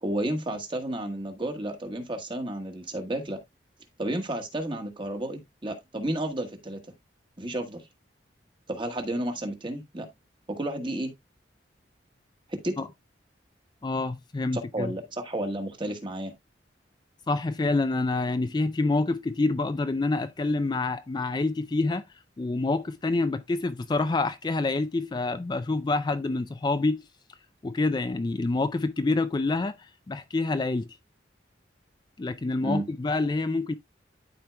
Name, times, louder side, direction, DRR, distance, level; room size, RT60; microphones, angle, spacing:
voice 1, 0.0-3.4 4.0-6.8 7.4-7.9 8.7-10.1 10.5-11.1 12.5-12.9 14.5-16.3 32.6-32.8, right 1 dB, 30° right, 1.3 m, -32 dB
voice 2, 13.8-14.9 17.3-22.0 22.4-27.0 27.6-30.9 32.2-33.7, left 3 dB, 25° left, 0.3 m, -27 dB
12.0 x 4.5 x 2.2 m
head